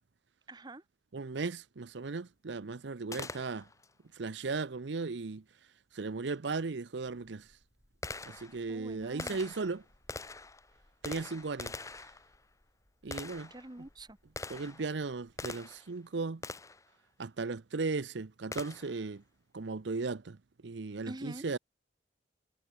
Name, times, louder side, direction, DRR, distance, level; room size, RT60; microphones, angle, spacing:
voice 1, 0.5-0.8 8.7-9.4 13.5-14.2 21.1-21.4, right 1 dB, 20° right, 1.0 m, -45 dB
voice 2, 1.1-3.7 4.1-5.4 5.9-7.5 8.3-9.8 11.0-11.7 13.0-13.5 14.5-16.4 17.2-19.2 19.5-20.4 20.6-21.6, right 4 dB, 70° right, 0.7 m, -36 dB
Gunshot gunfire, 3.1-3.9 6.3-6.4 7.1-15.9 16.4-16.9 18.5-19.0, left 3 dB, 15° left, 1.0 m, -44 dB
head